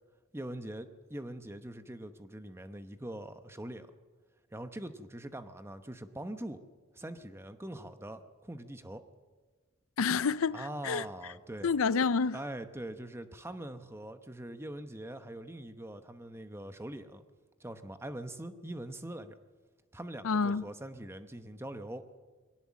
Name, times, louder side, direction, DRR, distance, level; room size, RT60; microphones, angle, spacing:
voice 1, 0.3-3.9 4.5-6.6 6.9-9.0 10.5-11.7 12.3-17.2 17.6-19.4 19.9-22.0, right 1 dB, 10° right, 0.9 m, -43 dB
voice 2, 10.0-11.0 11.6-12.4 20.2-20.6, left 5 dB, 70° left, 0.5 m, -28 dB
21.0 x 18.0 x 7.5 m
head